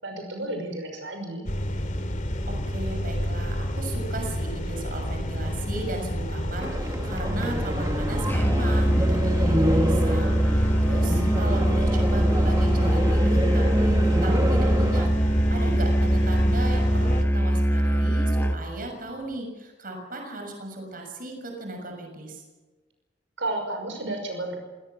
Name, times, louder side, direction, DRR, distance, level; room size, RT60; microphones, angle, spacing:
voice 1, 0.0-1.5 23.4-24.6, right 2 dB, 85° right, 4 dB, 5.8 m, -32 dB
sound 1, 1.5-17.2, equal, 45° left, 2.8 m, -29 dB
voice 2, 2.5-22.4, right 2 dB, 50° right, 3 dB, 6.5 m, -36 dB
sound 2, 6.6-15.1, equal, 20° right, 1.6 m, -29 dB
Musical instrument, 8.3-18.6, equal, 10° left, 1.4 m, -22 dB
26.5 x 18.5 x 7.2 m, 1.3 s
head